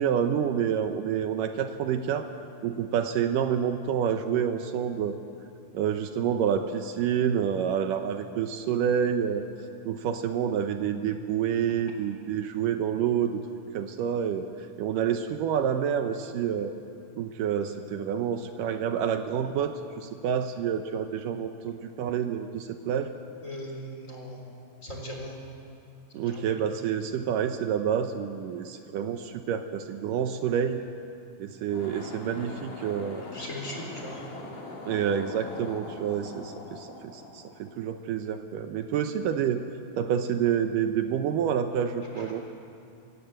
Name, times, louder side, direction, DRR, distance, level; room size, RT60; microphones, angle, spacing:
voice 1, 0.0-2.3 2.6-5.2 5.7-9.5 9.8-13.4 13.7-16.7 17.2-23.1 26.1-30.8 31.4-33.2 34.9-39.6 40.0-42.4, right 8 dB, 75° right, 7 dB, 2.4 m, -28 dB
voice 2, 23.4-24.4 24.8-25.4 26.2-26.5 33.2-34.3 42.1-42.3, equal, 20° left, 0 dB, 3.7 m, -39 dB
sound 1, 31.6-38.1, left 2 dB, 65° left, 4.2 m, -42 dB
27.5 x 16.5 x 7.8 m, 2.5 s
omnidirectional pair, 4.0 m